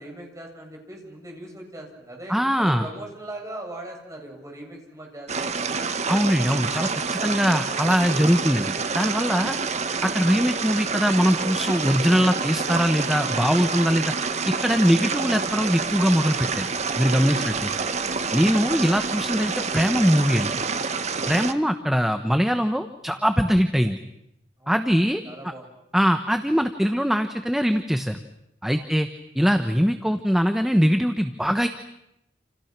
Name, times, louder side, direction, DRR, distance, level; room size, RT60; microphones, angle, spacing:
voice 1, 0.0-6.0 17.6-17.8 24.6-25.7 28.7-28.9, right 1 dB, 20° right, 1 dB, 7.8 m, -40 dB
voice 2, 2.3-2.8 6.1-9.6 10.0-14.1 14.4-16.7 17.0-17.7 18.3-20.5 21.3-24.0 24.7-25.2 25.9-28.2 28.6-29.1 29.3-31.7, equal, ahead, 7 dB, 1.2 m, -22 dB
sound 1, 5.3-21.5, right 4 dB, 40° right, 1.3 m, -27 dB
29.5 x 29.0 x 6.1 m, 0.82 s
head